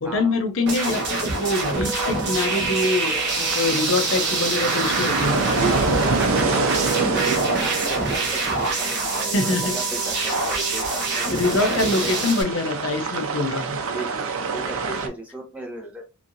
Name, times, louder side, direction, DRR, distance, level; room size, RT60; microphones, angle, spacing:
voice 1, 0.0-5.4 9.3-9.7 11.3-13.8, left 2 dB, 65° left, 7 dB, 0.6 m, -24 dB
sound 1, 0.7-12.4, right 2 dB, 50° right, 1.1 m, -25 dB
sound 2, 1.1-15.1, right 4 dB, 75° right, 0.5 m, -29 dB
sound 3, 1.7-11.6, right 6 dB, 40° left, 1.7 m, -35 dB
voice 2, 5.6-11.3 11.7-12.1 13.8-14.3 14.5-16.0, right 2 dB, 5° right, 0 dB, 0.7 m, -35 dB
3.0 x 2.6 x 2.5 m, 0.29 s
head